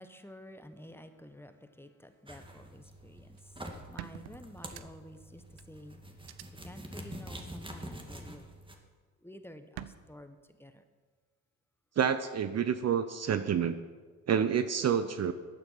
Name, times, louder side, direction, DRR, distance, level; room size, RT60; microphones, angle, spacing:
voice 1, 0.0-3.3 3.9-6.3 6.6-8.6 9.2-10.8, left 1 dB, 5° left, 8 dB, 1.3 m, -51 dB
sound 1, 2.3-8.7, right 1 dB, 15° right, 2.1 m, -46 dB
sound 2, 3.4-3.5 4.0-5.2 5.6-5.7 6.2-6.4 7.8-8.2 9.8-9.9, right 13 dB, 70° right, 0.8 m, -45 dB
voice 2, 12.0-13.8 14.3-15.3, right 8 dB, 40° right, 11 dB, 0.8 m, -28 dB
14.0 x 9.1 x 5.8 m, 1.4 s
hypercardioid pair, 60°, 39 cm